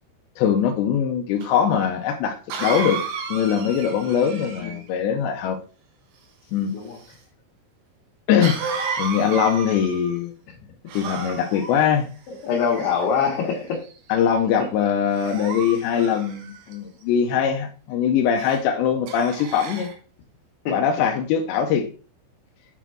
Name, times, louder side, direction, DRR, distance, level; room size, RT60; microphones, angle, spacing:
voice 1, 0.4-3.0 3.3-5.6 6.5-6.7 8.3-8.6 9.0-10.3 10.9-12.1 14.1-19.9 20.7-21.9, left 8 dB, 85° left, 4 dB, 2.7 m, -22 dB
Cough, 1.4-1.5 2.5-4.9 8.4-10.2 10.9-11.8 12.5-13.2 13.8-14.1 15.1-16.7 18.4-18.6 19.1-19.9, right 5 dB, 70° right, 2.8 m, -32 dB
voice 2, 4.2-4.7 6.7-7.0 12.4-13.8 20.7-20.8, left 6 dB, 65° left, -2 dB, 3.0 m, -24 dB
9.1 x 4.1 x 4.4 m, 0.38 s
omnidirectional pair, 5.6 m